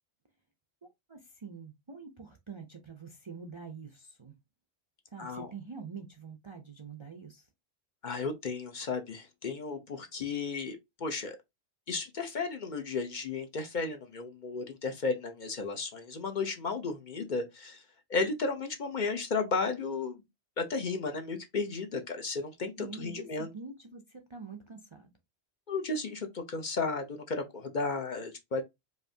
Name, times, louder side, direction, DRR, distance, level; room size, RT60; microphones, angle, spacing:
voice 1, 1.1-4.3 5.1-7.4 22.8-25.1, right 5 dB, 35° right, 0.5 m, -45 dB
voice 2, 5.2-5.5 8.0-11.4 11.9-17.8 18.1-20.2 20.6-23.5 25.7-28.6, left 4 dB, 50° left, 0.8 m, -34 dB
4.8 x 2.7 x 2.7 m
omnidirectional pair, 1.1 m